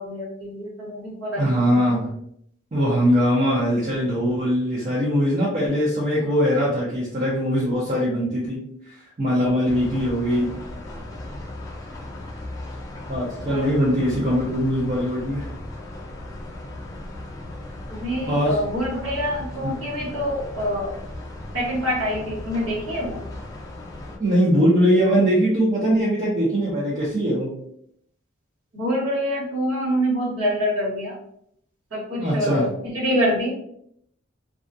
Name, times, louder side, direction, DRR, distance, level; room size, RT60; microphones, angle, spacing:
voice 1, 0.0-1.4 13.5-13.7 17.9-20.9 21.5-23.2 28.7-31.1 31.9-33.5, equal, 85° right, -5 dB, 1.2 m, -26 dB
voice 2, 1.4-2.1 2.7-10.5 13.1-15.5 18.3-18.6 19.6-19.7 24.2-27.6 32.2-32.7, equal, 40° right, -6 dB, 0.6 m, -21 dB
sound 1, 9.7-24.2, left 1 dB, 20° left, 0.5 m, -37 dB
2.3 x 2.2 x 2.5 m, 0.71 s
head